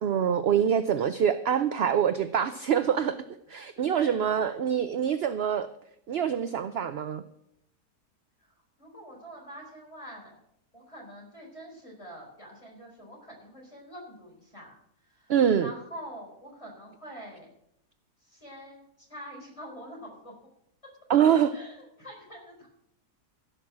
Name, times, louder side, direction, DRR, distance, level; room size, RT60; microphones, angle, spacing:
voice 1, 0.0-3.2 3.5-5.7 6.1-7.2 15.3-15.7 21.1-21.5, right 8 dB, 60° right, 11 dB, 0.6 m, -25 dB
voice 2, 3.9-4.5 8.4-8.5 8.8-10.4 10.7-14.8 15.0-15.3 15.6-17.5 18.2-18.8 19.1-20.3 21.5-22.7, equal, 20° left, -1 dB, 4.6 m, -45 dB
16.0 x 6.3 x 7.4 m, 0.75 s
omnidirectional pair, 1.7 m